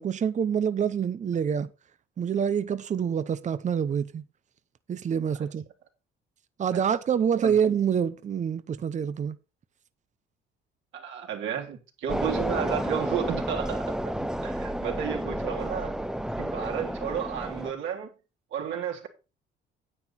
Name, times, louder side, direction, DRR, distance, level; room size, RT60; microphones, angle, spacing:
voice 1, 0.0-1.7 2.2-4.3 4.9-5.6 6.6-9.4, right 7 dB, 35° right, 0.8 m, -26 dB
voice 2, 10.9-14.1 14.4-16.0 16.4-18.1 18.5-19.1, right 8 dB, 70° right, 3.4 m, -32 dB
sound 1, 12.1-17.7, right 1 dB, 5° right, 0.7 m, -31 dB
9.7 x 8.9 x 4.3 m
cardioid pair, 100°, 21 cm